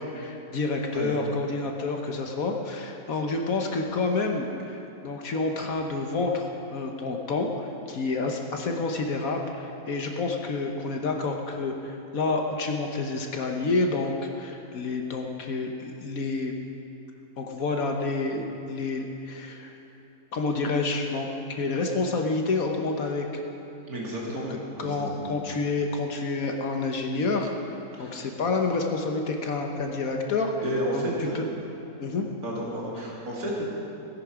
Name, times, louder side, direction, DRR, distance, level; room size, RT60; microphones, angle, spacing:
voice 1, 0.0-16.5 17.4-19.7 20.3-21.3 21.6-23.4 24.3-30.5 30.9-31.4 32.0-32.2, left 3 dB, 65° left, 2 dB, 1.4 m, -29 dB
voice 2, 23.9-25.3 28.0-28.1 30.6-31.5 32.4-33.6, right 1 dB, 70° right, -4 dB, 2.9 m, -32 dB
17.5 x 10.0 x 4.9 m, 3.0 s
omnidirectional pair, 1.6 m